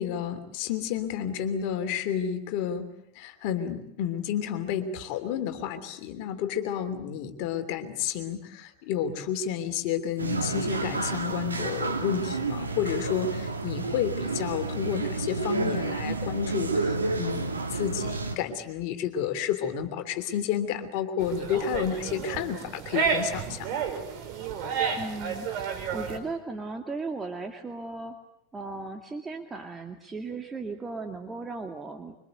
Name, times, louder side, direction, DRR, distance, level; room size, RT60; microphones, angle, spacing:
voice 1, 0.0-2.9 3.1-23.8, left 8 dB, 50° left, 7 dB, 3.0 m, -31 dB
sound 1, 10.2-18.4, right 3 dB, 85° right, 2.7 m, -30 dB
sound 2, 21.2-26.2, right 6 dB, 50° right, 4.9 m, -31 dB
voice 2, 25.0-28.2 28.5-32.2, right 3 dB, 15° right, 5 dB, 2.3 m, -36 dB
26.0 x 24.5 x 8.0 m, 0.81 s
figure-of-eight pair, 90°, 0 cm